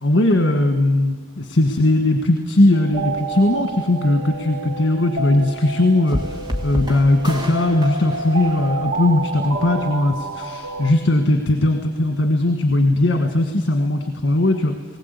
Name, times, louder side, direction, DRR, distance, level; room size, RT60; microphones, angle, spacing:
voice 1, 0.0-6.4 6.6-15.0, left 1 dB, 75° left, 5 dB, 1.5 m, -19 dB
sound 1, 2.7-10.9, right 3 dB, 70° right, 2.2 m, -29 dB
sound 2, 6.1-9.3, equal, 25° right, 2.0 m, -30 dB
20.0 x 18.5 x 8.3 m, 1.4 s
head